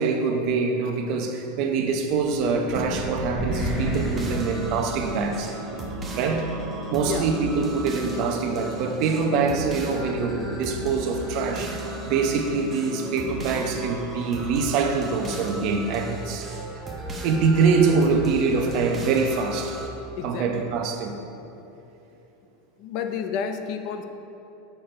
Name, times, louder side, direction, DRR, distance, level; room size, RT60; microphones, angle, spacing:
voice 1, 0.0-5.6 6.1-6.5 6.9-16.5 17.2-19.8 20.2-21.2, right 4 dB, 45° right, 4 dB, 0.8 m, -24 dB
sound 1, 2.0-5.5, right 1 dB, 5° left, 1.6 m, -30 dB
sound 2, 3.6-19.9, right 2 dB, 15° right, 0.9 m, -37 dB
sound 3, 3.9-13.9, equal, 80° left, 1.9 m, -39 dB
voice 2, 20.2-20.7 22.8-24.0, left 6 dB, 45° left, 7 dB, 0.6 m, -30 dB
8.6 x 6.8 x 4.4 m, 2.9 s
supercardioid pair, 160°, 0 cm